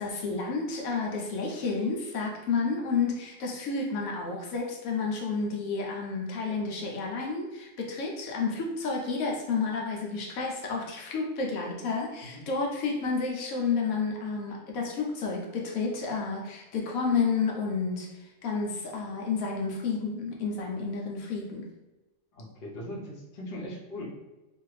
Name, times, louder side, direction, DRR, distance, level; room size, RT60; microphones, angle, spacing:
voice 1, 0.0-21.6, left 4 dB, 80° left, 0 dB, 1.1 m, -31 dB
voice 2, 22.3-24.0, left 1 dB, 50° left, -4 dB, 0.8 m, -39 dB
2.6 x 2.4 x 3.1 m, 1.1 s
omnidirectional pair, 1.5 m